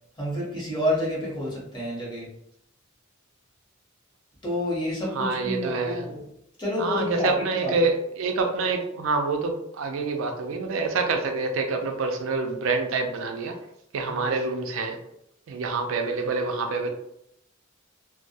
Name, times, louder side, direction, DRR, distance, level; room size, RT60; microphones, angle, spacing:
voice 1, 0.2-2.3 4.4-6.2 6.6-7.7 14.1-14.2, left 1 dB, 20° left, -6 dB, 1.0 m, -29 dB
voice 2, 5.1-6.1 6.8-13.6 13.9-15.0 15.5-16.9, right 3 dB, 70° right, 4 dB, 0.4 m, -27 dB
2.2 x 2.1 x 2.6 m, 0.75 s
head